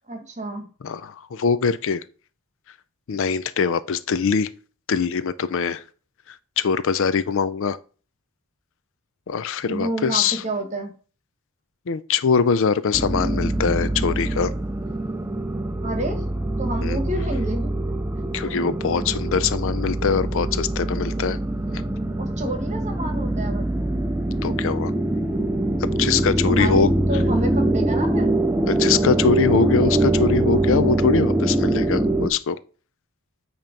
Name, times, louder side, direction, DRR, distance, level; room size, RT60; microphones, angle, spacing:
voice 1, 0.1-0.7 9.7-10.9 15.8-16.2 16.6-17.7 18.4-18.5 22.2-23.9 26.4-28.3, right 1 dB, 30° right, 1.5 m, -29 dB
voice 2, 0.8-2.0 3.1-4.5 4.9-5.8 6.3-7.8 9.3-10.4 11.9-14.5 16.8-17.0 18.3-21.4 21.7-21.8 24.4-24.9 26.0-26.9 28.7-32.6, left 6 dB, 60° left, 0.4 m, -22 dB
sound 1, 12.9-32.3, right 1 dB, 10° right, 0.6 m, -23 dB
8.9 x 3.0 x 5.2 m
head